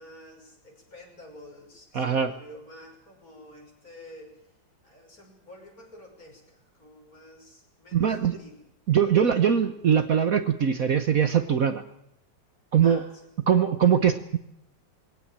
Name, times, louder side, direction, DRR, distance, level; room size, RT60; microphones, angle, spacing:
voice 1, 0.0-4.5 4.8-8.6 12.8-13.3, left 1 dB, 50° left, 1 dB, 6.5 m, -49 dB
voice 2, 1.9-2.3 7.9-8.4 8.9-11.8 12.7-13.0 13.5-14.4, right 8 dB, 55° right, 9 dB, 1.4 m, -22 dB
21.5 x 17.5 x 8.8 m, 0.79 s
omnidirectional pair, 2.0 m